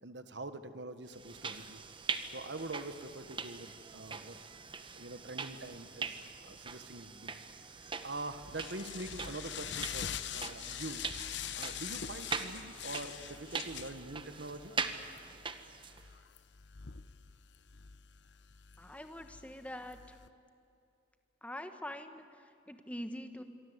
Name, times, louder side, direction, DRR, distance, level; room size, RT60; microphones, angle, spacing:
voice 1, 0.0-1.8 2.3-4.4 4.9-7.3 7.6-11.1 11.6-14.7, right 2 dB, 65° right, 10 dB, 1.4 m, -44 dB
sound 1, 1.1-16.1, right 5 dB, 25° right, 1.1 m, -42 dB
sound 2, 7.9-20.3, left 9 dB, 65° left, 0.9 m, -45 dB
voice 2, 18.8-20.2 21.4-23.4, left 1 dB, 5° left, 7 dB, 1.2 m, -44 dB
26.5 x 23.5 x 8.1 m, 2.5 s
head